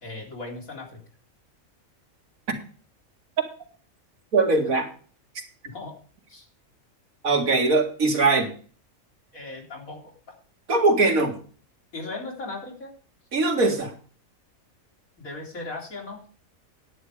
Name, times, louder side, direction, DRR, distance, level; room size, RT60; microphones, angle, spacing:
voice 1, 0.0-1.0 5.6-5.9 6.3-6.5 9.3-10.0 11.9-12.9 15.2-16.2, left 2 dB, 75° left, 0 dB, 3.4 m, -37 dB
voice 2, 4.3-4.9 7.2-8.5 10.7-11.4 13.3-13.9, right 3 dB, 80° right, 3 dB, 2.3 m, -21 dB
10.0 x 8.8 x 4.8 m, 0.40 s
omnidirectional pair, 1.4 m